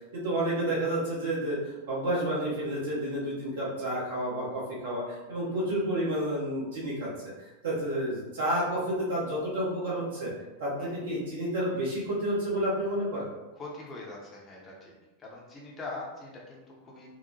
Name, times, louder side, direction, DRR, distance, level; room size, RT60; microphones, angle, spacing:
voice 1, 0.1-7.1 7.6-10.3 10.6-13.3, right 1 dB, 60° right, -6 dB, 0.9 m, -30 dB
voice 2, 13.6-14.7 15.2-17.1, left 2 dB, 25° left, -2 dB, 0.7 m, -42 dB
2.8 x 2.1 x 2.7 m, 1.1 s
figure-of-eight pair, 90°, 0 cm